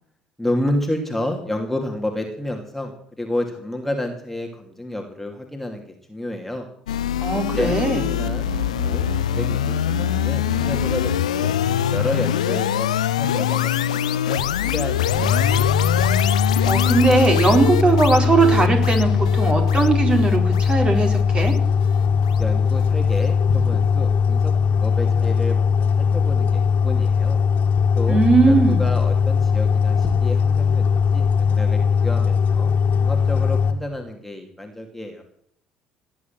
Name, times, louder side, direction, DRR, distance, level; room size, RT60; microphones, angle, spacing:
voice 1, 0.4-6.7 7.3-9.1 9.3-11.6 11.9-12.9 13.2-15.5 22.4-27.4 27.9-32.7 33.0-35.2, left 1 dB, 5° left, 2 dB, 2.8 m, -30 dB
sound 1, 6.9-22.0, left 11 dB, 80° left, 0.6 m, -24 dB
voice 2, 7.2-8.1 16.7-21.5 28.1-28.9, right 3 dB, 30° right, 3 dB, 4.4 m, -19 dB
sound 2, 7.3-12.5, right 7 dB, 80° right, 1.4 m, -35 dB
sound 3, 15.1-33.7, left 6 dB, 50° left, 2.4 m, -19 dB
18.5 x 8.6 x 7.6 m, 0.66 s
figure-of-eight pair, 55°, 4 cm